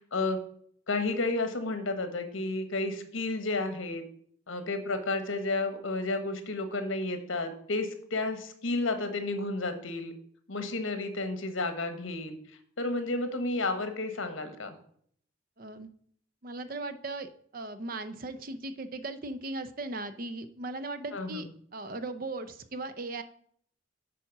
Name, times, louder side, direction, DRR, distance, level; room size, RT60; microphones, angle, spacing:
voice 1, 0.1-0.4 0.9-4.0 4.5-10.1 10.5-12.4 12.8-14.7 21.1-21.5, left 2 dB, 75° left, 8 dB, 1.2 m, -31 dB
voice 2, 15.6-15.9 16.4-23.2, right 2 dB, 45° right, 11 dB, 0.6 m, -38 dB
9.2 x 4.2 x 5.8 m, 0.62 s
head